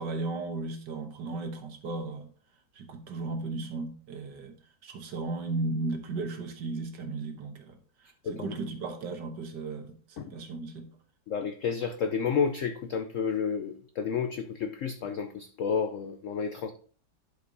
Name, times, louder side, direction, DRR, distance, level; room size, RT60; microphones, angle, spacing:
voice 1, 0.0-2.3 2.7-4.5 4.8-10.9, right 3 dB, 65° right, 1.7 m, -35 dB
voice 2, 11.3-16.7, left 6 dB, 80° left, 0.7 m, -31 dB
11.5 x 5.2 x 2.7 m
omnidirectional pair, 2.0 m